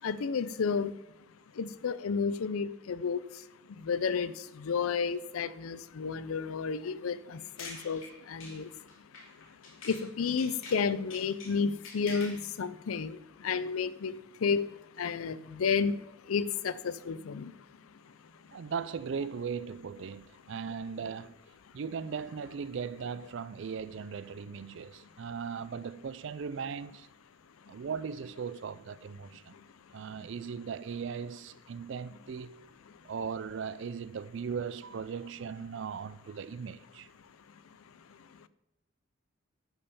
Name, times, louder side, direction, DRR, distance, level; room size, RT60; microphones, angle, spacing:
voice 1, 0.0-1.0 1.6-3.2 3.8-8.0 8.3-8.7 9.8-14.7 15.0-16.0 16.3-17.5, left 5 dB, 90° left, 0.5 m, -31 dB
sound 1, 7.3-10.1 10.4-12.5, left 3 dB, 70° left, 2.6 m, -47 dB
voice 2, 18.5-21.4 21.7-27.1 27.7-29.5 29.9-32.6 33.0-37.1, right 6 dB, 60° right, 0.4 m, -38 dB
11.0 x 5.5 x 5.4 m
head